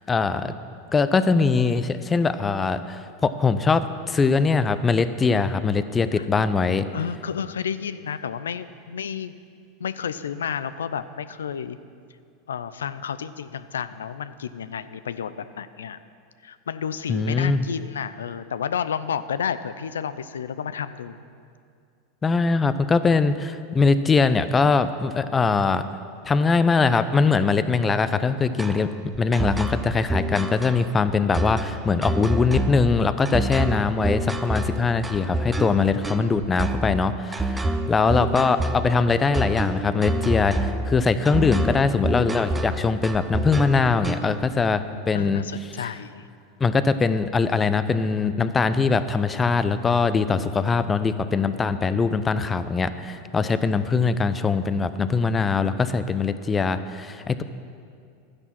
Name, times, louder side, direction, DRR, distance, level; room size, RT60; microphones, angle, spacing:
voice 1, 0.1-0.5 0.9-6.9 17.1-17.6 22.2-25.9 26.3-45.4 45.8-45.9 46.6-57.4, left 4 dB, 20° left, 12 dB, 0.6 m, -22 dB
voice 2, 6.9-9.4 9.8-11.8 12.5-16.0 16.4-21.2 45.1-46.3, left 7 dB, 85° left, 14 dB, 0.5 m, -31 dB
sound 1, 28.6-44.5, right 1 dB, 15° right, 0.8 m, -27 dB
12.5 x 9.8 x 5.9 m, 2.4 s
hypercardioid pair, 100°, 0 cm